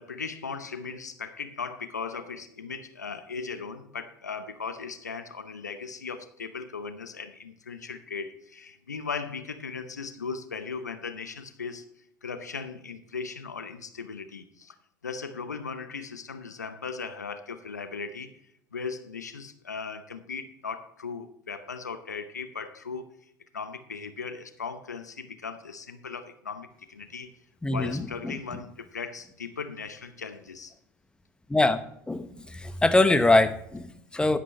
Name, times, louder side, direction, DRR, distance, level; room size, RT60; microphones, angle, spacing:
voice 1, 0.0-11.9 12.2-14.7 15.0-18.3 18.7-27.3 27.7-30.7, left 5 dB, 90° left, 11 dB, 0.7 m, -38 dB
voice 2, 27.6-28.3 31.5-31.8 32.1-34.4, left 2 dB, 10° left, 12 dB, 1.0 m, -23 dB
11.5 x 10.5 x 3.1 m, 0.72 s
hypercardioid pair, 70°, 9 cm